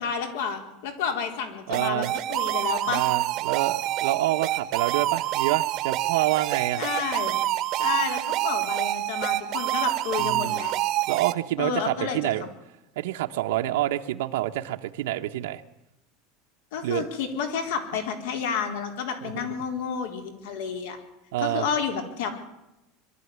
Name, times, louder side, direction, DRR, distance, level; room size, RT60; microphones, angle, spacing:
voice 1, 0.0-3.0 6.8-7.4 7.8-10.7 11.6-12.5 16.7-21.0 21.4-22.3, left 6 dB, 75° left, 6 dB, 4.1 m, -30 dB
sound 1, 1.7-11.3, right 15 dB, 35° right, 1.0 m, -27 dB
voice 2, 1.7-2.1 2.9-6.8 10.2-10.6 11.1-12.4 13.0-15.6 16.8-17.1 19.2-19.3 21.3-21.7, right 15 dB, 90° right, 4 dB, 1.1 m, -27 dB
22.5 x 13.0 x 9.5 m, 0.94 s
supercardioid pair, 175°, 0 cm